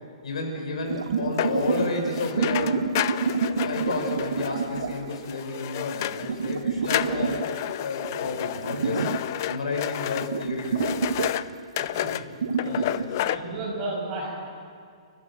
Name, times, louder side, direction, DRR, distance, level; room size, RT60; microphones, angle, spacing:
voice 1, 0.2-2.9 3.6-7.4 7.8-9.1 9.4-11.0 12.7-13.2, left 3 dB, 75° left, 2 dB, 6.2 m, -31 dB
sound 1, 0.9-5.4 6.2-7.7 8.0-9.3 9.7-9.8 10.2-11.6 12.3-13.1, right 5 dB, 75° right, 1.4 m, -28 dB
sound 2, 1.4-6.6 6.8-11.5 11.8-12.2 12.6-13.4, left 13 dB, 30° left, 0.5 m, -31 dB
voice 2, 7.0-7.4 11.8-12.3 12.6-12.9 13.2-14.3, right 2 dB, 20° right, -3 dB, 6.5 m, -34 dB
30.0 x 15.0 x 7.6 m, 2.2 s
hypercardioid pair, 175°, 3 cm